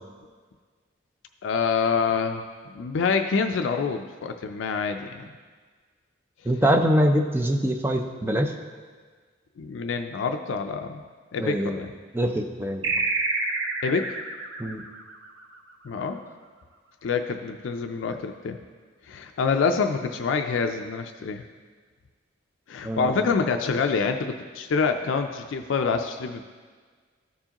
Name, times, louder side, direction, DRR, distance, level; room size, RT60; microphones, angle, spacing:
voice 1, 1.4-2.4 2.7-5.3 9.6-11.0 11.3-11.9 13.8-14.2 15.8-16.2 17.0-18.6 19.1-21.4 22.7-26.4, left 5 dB, 75° left, 6 dB, 0.4 m, -26 dB
voice 2, 6.5-8.5 11.4-11.8 12.1-12.9 14.6-14.8 22.8-23.3, equal, 10° right, 4 dB, 0.4 m, -24 dB
sound 1, 12.8-15.8, right 3 dB, 70° right, 0.7 m, -28 dB
13.5 x 4.7 x 2.9 m, 1.5 s
head